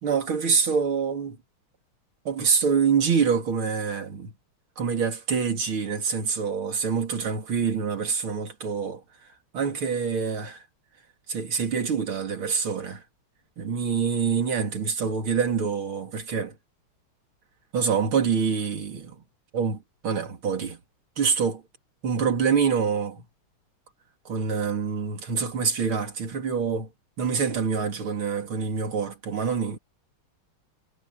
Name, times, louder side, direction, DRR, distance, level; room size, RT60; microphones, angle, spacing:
voice 1, 0.0-1.4 2.3-4.3 4.8-9.0 9.5-10.6 11.3-13.0 13.6-16.6 17.7-19.2 19.5-20.8 21.2-21.6 22.0-23.2 24.3-26.9 27.2-29.8, right 6 dB, 75° right, 3.6 m, -26 dB
omnidirectional pair, 2.3 m